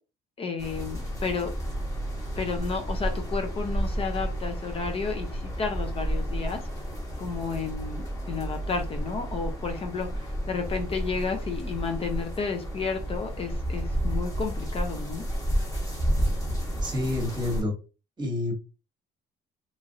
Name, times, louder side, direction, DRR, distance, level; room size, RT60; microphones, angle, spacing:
voice 1, 0.4-1.5 2.4-6.6 7.2-15.2, left 5 dB, 35° left, 0.5 m, -32 dB
sound 1, 0.6-17.6, equal, 20° left, 1.2 m, -31 dB
voice 2, 16.8-17.7 18.2-18.6, left 2 dB, 25° right, 1.1 m, -28 dB
3.0 x 2.5 x 2.7 m
cardioid pair, 110°, 17 cm